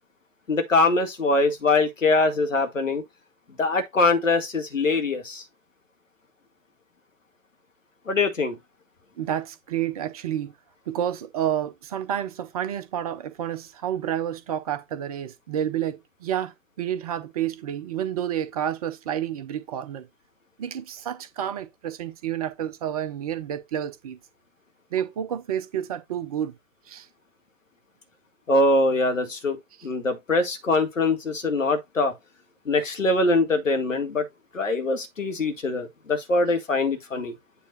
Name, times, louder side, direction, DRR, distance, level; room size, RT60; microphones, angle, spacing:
voice 1, 0.5-3.0 3.6-5.4 8.1-8.6 28.5-29.6 29.8-32.1 32.7-34.3 34.5-37.3, left 2 dB, 75° left, 1.9 m, -23 dB
voice 2, 9.2-10.5 10.9-20.1 20.6-24.2 24.9-26.5 26.9-27.1, right 10 dB, 30° right, 0.7 m, -30 dB
8.5 x 3.1 x 4.1 m
figure-of-eight pair, 125°, 39 cm